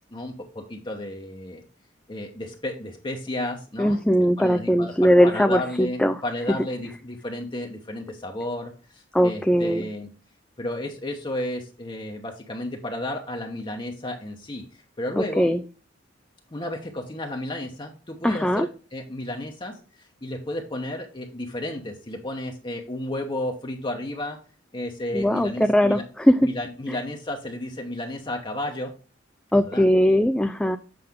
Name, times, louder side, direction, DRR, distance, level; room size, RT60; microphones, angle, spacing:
voice 1, 0.1-1.6 2.1-4.9 5.2-10.1 10.6-14.6 15.0-15.5 16.5-19.8 20.2-24.4 24.7-26.0 26.4-28.9 29.7-29.9, left 1 dB, 25° left, 2 dB, 1.0 m, -32 dB
voice 2, 3.8-6.2 9.1-9.8 15.2-15.6 18.2-18.7 25.1-26.4 29.5-30.8, equal, 5° left, 6 dB, 0.3 m, -20 dB
7.8 x 5.2 x 3.6 m, 0.36 s
head